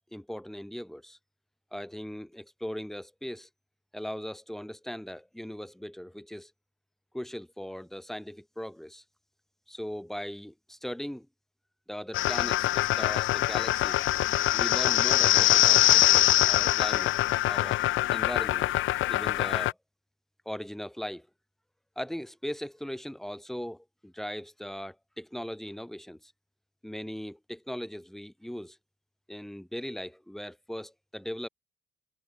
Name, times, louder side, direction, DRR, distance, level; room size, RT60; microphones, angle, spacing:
voice 1, 0.1-1.2 1.7-3.5 3.9-6.5 7.1-9.0 9.7-11.3 11.9-14.0 14.5-17.1 17.5-17.8 18.1-18.7 19.1-19.8 20.5-21.3 22.0-26.3 26.8-28.8 29.3-31.5, equal, ahead, 5.7 m, -39 dB
sound 1, 12.1-19.7, left 15 dB, 70° left, 1.2 m, -24 dB
cardioid pair, 175°, 21 cm